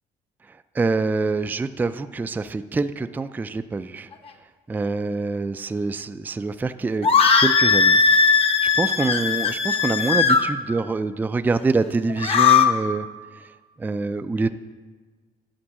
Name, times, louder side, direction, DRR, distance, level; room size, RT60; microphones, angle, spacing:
voice 1, 0.7-4.1 4.7-7.1 7.4-8.0 8.6-13.1 13.8-14.5, right 3 dB, 10° right, 10 dB, 0.3 m, -25 dB
sound 1, 7.0-10.4 12.1-12.7, left 5 dB, 35° left, 0.8 m, -18 dB
11.5 x 4.5 x 7.4 m, 1.4 s
cardioid pair, 110°, 17 cm